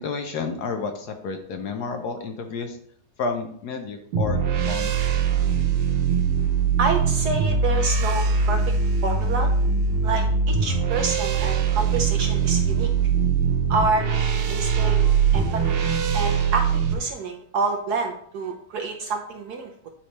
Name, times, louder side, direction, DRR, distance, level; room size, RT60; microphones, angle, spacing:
voice 1, 0.0-2.8 3.2-5.1, left 4 dB, 65° left, 5 dB, 1.1 m, -31 dB
sound 1, 4.1-16.9, right 6 dB, 90° right, 1.7 m, -22 dB
voice 2, 6.8-8.6 9.0-9.5 10.0-12.9 13.7-14.0 14.5-15.0 15.3-19.9, right 3 dB, 65° right, 3 dB, 1.0 m, -28 dB
9.0 x 3.2 x 4.1 m, 0.62 s
omnidirectional pair, 2.2 m